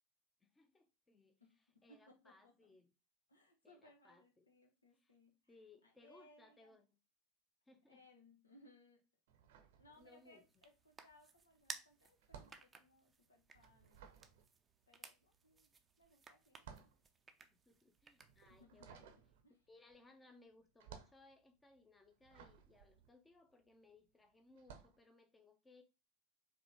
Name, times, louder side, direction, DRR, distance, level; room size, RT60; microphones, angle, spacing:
voice 1, 0.4-1.4 1.8-2.9 3.6-4.5 4.9-5.1 5.5-6.9 7.7-8.0 10.0-10.4 17.7-19.1 19.7-25.8, left 2 dB, 15° left, 0.7 m, -66 dB
voice 2, 1.4-2.7 3.3-5.5 5.8-6.8 7.9-9.0 9.8-14.1 14.9-15.7 16.0-16.9 18.5-19.6, left 1 dB, 80° left, 1.0 m, -67 dB
sound 1, 9.3-10.5 10.8-24.0 24.5-25.0, right 7 dB, 60° right, 0.7 m, -60 dB
sound 2, 9.9-18.6, right 4 dB, 20° right, 0.6 m, -58 dB
4.9 x 3.0 x 3.3 m
figure-of-eight pair, 80°, 0 cm